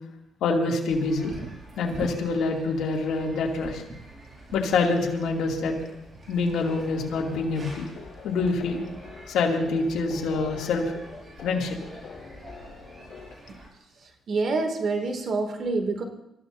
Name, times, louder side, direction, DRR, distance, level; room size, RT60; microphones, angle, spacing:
voice 1, 0.4-1.3 1.8-3.8 4.5-5.7 6.3-7.9 8.2-8.8 9.3-10.9 11.4-11.8, left 3 dB, 80° left, 0 dB, 2.6 m, -26 dB
sound 1, 0.9-13.7, right 2 dB, 35° right, 6.0 m, -45 dB
sound 2, 6.6-13.3, left 6 dB, 55° left, 6.7 m, -45 dB
voice 2, 14.3-16.0, right 3 dB, 55° right, 4 dB, 2.5 m, -26 dB
27.0 x 14.5 x 2.7 m, 0.84 s
cardioid pair, 90°, 0 cm